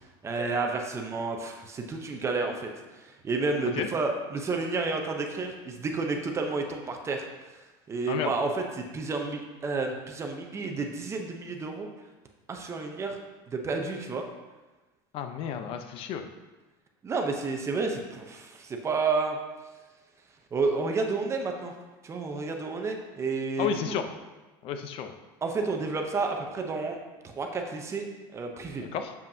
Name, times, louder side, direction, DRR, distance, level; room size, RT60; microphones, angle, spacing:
voice 1, 0.2-7.2 7.9-11.9 12.5-13.2 13.5-14.2 17.0-19.4 20.5-21.7 22.0-23.9 25.4-27.0 27.2-28.8, right 3 dB, 25° right, 3 dB, 0.7 m, -30 dB
voice 2, 15.1-16.3 23.6-24.1 24.6-25.2 28.8-29.1, left 7 dB, 50° left, 7 dB, 0.6 m, -32 dB
7.1 x 5.2 x 2.7 m, 1.2 s
supercardioid pair, 130°, 12 cm